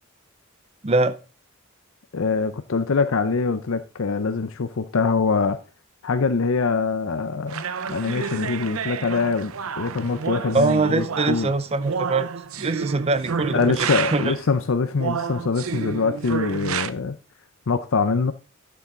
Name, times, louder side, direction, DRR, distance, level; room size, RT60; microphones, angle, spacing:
voice 1, 0.8-1.2 10.5-12.3 12.6-14.3, right 3 dB, 30° right, 0.6 m, -23 dB
voice 2, 2.1-5.6 6.0-9.5 9.8-11.5 13.5-17.2 17.7-18.3, left 4 dB, 75° left, 0.6 m, -24 dB
sound 1, 7.5-14.5 15.0-16.9, right 6 dB, 90° right, 0.6 m, -30 dB
11.5 x 7.0 x 3.7 m
head